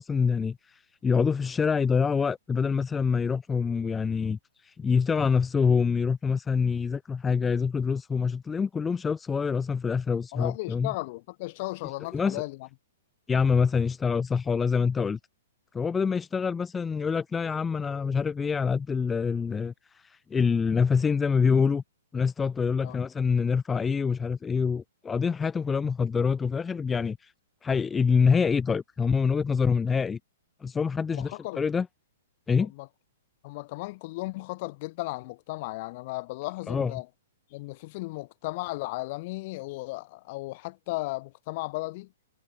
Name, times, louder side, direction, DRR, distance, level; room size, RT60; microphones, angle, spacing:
voice 1, 0.0-10.9 12.1-12.4 13.3-15.2 15.7-21.8 22.1-27.3 27.6-30.2 30.6-31.9 32.5-32.7 36.7-36.9, left 5 dB, 10° left, 0.9 m, -26 dB
voice 2, 10.3-12.7 22.8-23.0 31.1-31.6 32.6-32.9 33.4-37.1 37.5-42.1, left 22 dB, 40° left, 3.3 m, -35 dB
hypercardioid pair, 150°, 0 cm